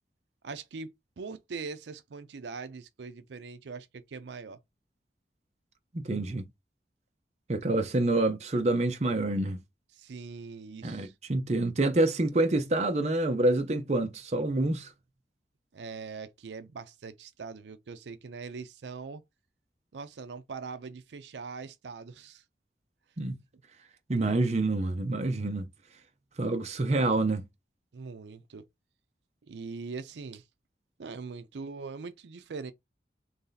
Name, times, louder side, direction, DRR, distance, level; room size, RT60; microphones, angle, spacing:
voice 1, 0.4-0.9 1.2-4.6 9.9-11.1 15.7-19.2 19.9-22.4 27.9-28.6 29.4-30.4 31.0-32.7, right 4 dB, 80° right, 0.5 m, -41 dB
voice 2, 5.9-6.4 7.5-9.6 10.8-14.9 23.2-23.4 24.1-25.7 26.4-27.5, right 2 dB, 40° right, 0.6 m, -27 dB
3.2 x 2.7 x 3.8 m
head